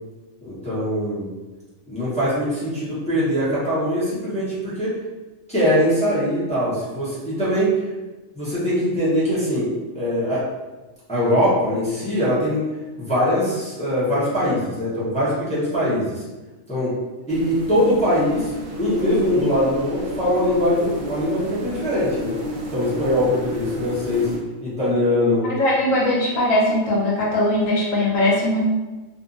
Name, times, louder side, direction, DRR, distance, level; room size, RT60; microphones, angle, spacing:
voice 1, 0.4-1.3 1.9-4.9 5.5-7.8 8.3-9.7 9.9-10.4 11.1-12.6 13.0-16.2 16.7-16.9 17.3-18.5 18.8-22.4 22.7-24.3 24.6-25.5, equal, 5° left, -11 dB, 0.7 m, -22 dB
sound 1, 17.3-24.4, equal, 65° right, 0.6 m, -32 dB
voice 2, 25.6-28.6, left 1 dB, 75° left, -3 dB, 1.1 m, -20 dB
2.5 x 2.5 x 2.5 m, 1.2 s
omnidirectional pair, 1.4 m